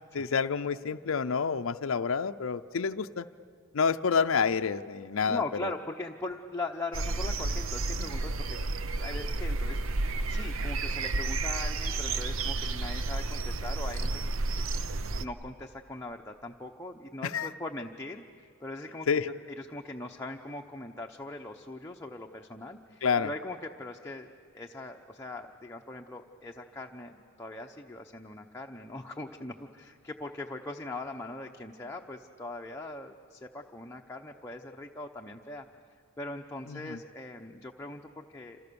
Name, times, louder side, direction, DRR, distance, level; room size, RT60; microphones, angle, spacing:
voice 1, 0.1-3.3 3.7-5.7 8.0-8.1 17.2-17.5 19.1-19.3 23.0-23.3 36.7-37.0, left 5 dB, 70° left, 8 dB, 0.5 m, -28 dB
voice 2, 5.3-8.6 9.0-14.2 14.6-14.7 15.2-24.3 24.5-35.7 36.2-38.6, left 2 dB, 15° left, 1 dB, 0.8 m, -40 dB
sound 1, 6.9-15.3, right 2 dB, 65° right, 0.7 m, -31 dB
28.0 x 27.0 x 7.0 m, 2.4 s
head